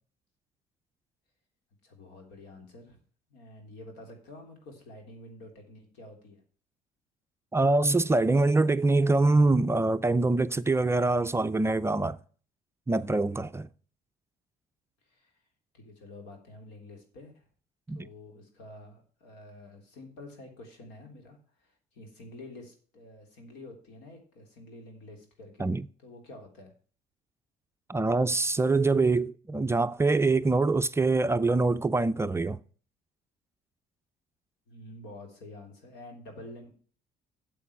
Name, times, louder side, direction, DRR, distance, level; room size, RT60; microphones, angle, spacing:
voice 1, 1.8-3.0 3.3-6.4 15.0-15.4 15.7-17.4 17.9-25.7 26.0-26.7 34.7-36.7, left 2 dB, 90° left, 3.6 m, -48 dB
voice 2, 7.5-12.2 12.9-13.7 17.9-18.0 25.6-25.8 27.9-32.6, right 3 dB, 15° right, 0.4 m, -24 dB
8.5 x 7.6 x 5.9 m
cardioid pair, 110°, 17 cm